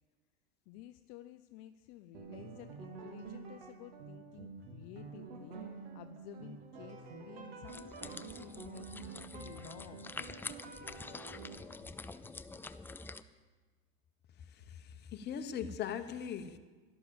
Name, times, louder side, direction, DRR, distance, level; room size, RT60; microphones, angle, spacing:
voice 1, 0.7-11.4, left 13 dB, 55° left, 10 dB, 0.6 m, -53 dB
sound 1, 2.1-11.6, right 5 dB, 85° right, 2.2 m, -48 dB
sound 2, 7.7-13.2, left 3 dB, 5° left, 0.4 m, -47 dB
voice 2, 14.4-16.6, left 8 dB, 35° left, 7 dB, 1.1 m, -40 dB
12.0 x 11.5 x 7.1 m, 1.4 s
supercardioid pair, 115°, 30 cm